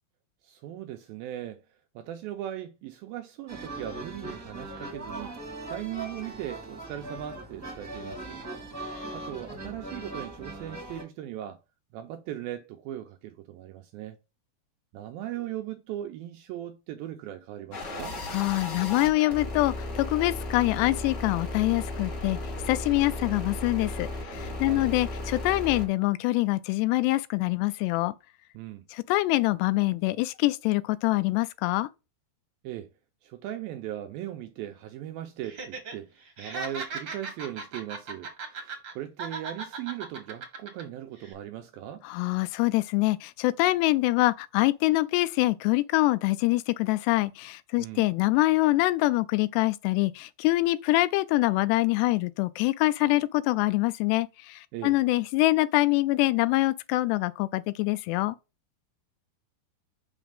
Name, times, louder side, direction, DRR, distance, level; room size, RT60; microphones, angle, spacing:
voice 1, 0.4-1.6 2.0-5.3 5.7-8.4 9.1-11.6 11.9-14.2 14.9-18.2 24.6-25.0 28.5-28.9 32.6-32.9 33.2-42.1 47.8-48.1 54.7-55.0, right 12 dB, 85° right, 2.1 m, -38 dB
sound 1, 3.5-11.0, right 2 dB, 10° right, 0.9 m, -40 dB
sound 2, 17.7-25.9, left 2 dB, 30° left, 1.9 m, -35 dB
voice 2, 18.3-22.4 22.7-28.1 28.9-31.9 42.1-58.4, left 19 dB, 90° left, 2.7 m, -25 dB
Laughter, 35.4-35.9 36.2-38.9 39.2-40.8 41.2-41.3, right 4 dB, 55° right, 1.3 m, -37 dB
6.2 x 5.8 x 3.5 m
omnidirectional pair, 4.8 m